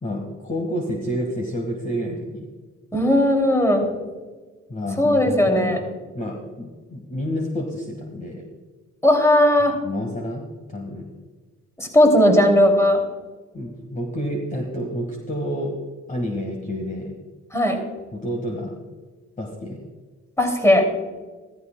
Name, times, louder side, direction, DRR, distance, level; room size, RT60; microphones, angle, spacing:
voice 1, 0.0-2.5 4.7-5.8 6.2-8.5 9.8-10.4 10.7-11.1 13.5-15.7 16.1-17.1 18.1-18.7 19.4-19.8, equal, 25° left, 1 dB, 1.7 m, -29 dB
voice 2, 2.9-3.9 5.0-5.8 9.0-9.7 11.8-13.0 17.5-17.8 20.4-20.9, left 1 dB, 10° left, 2 dB, 2.7 m, -17 dB
14.5 x 14.0 x 2.3 m, 1.3 s
cardioid pair, 90°, 30 cm